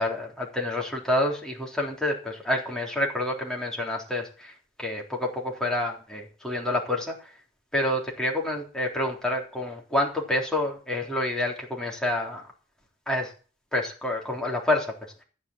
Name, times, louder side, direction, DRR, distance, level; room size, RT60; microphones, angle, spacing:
voice 1, 0.0-4.5 4.8-7.3 7.7-12.4 13.1-13.3 13.7-14.9, left 1 dB, 5° left, -1 dB, 3.6 m, -28 dB
14.5 x 5.5 x 8.7 m, 0.37 s
head